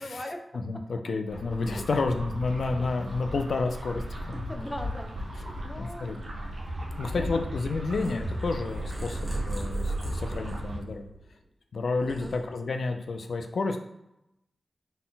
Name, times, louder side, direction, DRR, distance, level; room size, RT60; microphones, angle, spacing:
voice 1, 0.0-0.8 1.6-2.0 2.8-2.9 4.1-4.2 4.5-6.1 7.1-7.4 12.0-12.3, left 1 dB, 10° left, 4 dB, 0.5 m, -40 dB
voice 2, 0.5-4.6 5.8-6.2 7.0-11.1 11.7-13.8, left 3 dB, 70° left, 5 dB, 0.4 m, -30 dB
sound 1, 1.3-10.8, equal, 65° right, 0.8 m, -36 dB
Purr, 7.9-11.4 11.8-12.9, right 2 dB, 10° right, 1.3 m, -36 dB
3.9 x 2.2 x 3.9 m, 0.86 s
wide cardioid pair, 145°, 0 cm